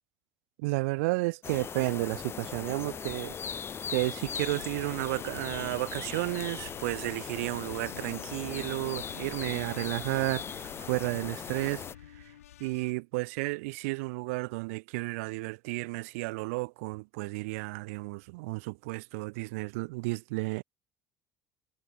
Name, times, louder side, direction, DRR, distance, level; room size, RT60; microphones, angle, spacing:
voice 1, 0.6-3.4 3.9-11.8 12.2-12.3 12.6-20.6, right 25 dB, 75° right, 0.4 m, -32 dB
sound 1, 1.4-12.0, left 7 dB, 35° left, 0.4 m, -39 dB
sound 2, 4.3-12.9, left 12 dB, 90° left, 5.3 m, -50 dB
hypercardioid pair, 70°, 8 cm